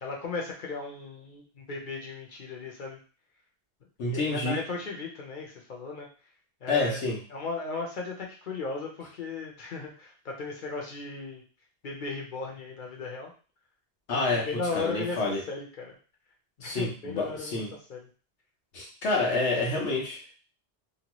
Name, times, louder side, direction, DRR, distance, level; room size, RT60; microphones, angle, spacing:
voice 1, 0.0-3.0 4.0-6.1 6.6-7.0 7.3-11.4 11.8-13.3 14.3-15.9 16.6-17.6 17.9-18.0 19.2-19.7, left 4 dB, 50° left, 0 dB, 0.8 m, -36 dB
voice 2, 4.0-4.6 6.7-7.2 14.1-15.4 16.6-17.7 18.7-20.3, left 3 dB, 90° left, -1 dB, 1.2 m, -28 dB
2.8 x 2.2 x 2.9 m, 0.37 s
omnidirectional pair, 1.1 m